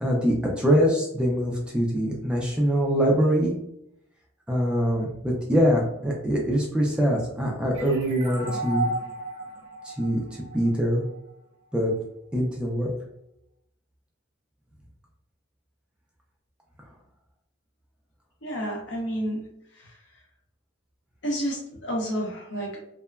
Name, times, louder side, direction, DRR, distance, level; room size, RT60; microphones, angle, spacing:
voice 1, 0.0-3.5 4.5-8.9 9.8-10.2 10.5-11.0 11.7-11.9 12.3-12.9, equal, 5° right, -2 dB, 0.4 m, -23 dB
sound 1, 7.7-11.2, right 2 dB, 25° right, 0.8 m, -33 dB
voice 2, 18.4-19.5 19.7-20.0 21.2-22.8, equal, 60° left, -1 dB, 0.8 m, -30 dB
2.8 x 2.2 x 2.3 m, 0.77 s
head